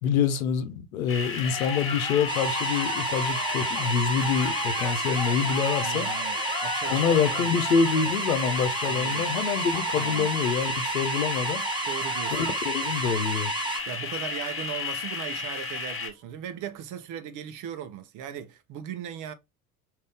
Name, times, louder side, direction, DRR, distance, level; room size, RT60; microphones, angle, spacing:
voice 1, 0.0-6.1 6.9-11.6 12.3-13.5, left 6 dB, 70° left, 0.8 m, -26 dB
sound 1, 1.1-16.1, left 5 dB, 30° left, 1.3 m, -33 dB
Cheering, 1.4-12.6 12.9-13.4 13.8-13.9 14.1-14.9, left 3 dB, 10° left, 0.9 m, -38 dB
sound 2, 2.3-13.8, right 4 dB, 10° right, 0.5 m, -31 dB
voice 2, 5.8-7.6 8.9-9.3 9.9-10.3 11.8-12.5 13.9-19.3, right 9 dB, 45° right, 0.8 m, -38 dB
5.2 x 2.7 x 3.3 m
figure-of-eight pair, 65°, 44 cm